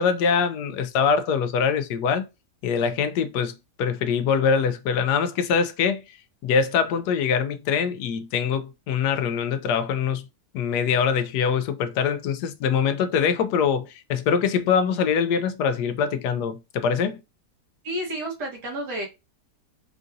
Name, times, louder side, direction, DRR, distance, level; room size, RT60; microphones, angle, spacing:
voice 1, 0.0-2.3 2.6-6.0 6.4-10.2 10.5-17.2, left 6 dB, 75° left, 1.1 m, -23 dB
voice 2, 17.8-19.1, right 1 dB, 75° right, 2.1 m, -30 dB
4.7 x 2.6 x 2.5 m
omnidirectional pair, 1.8 m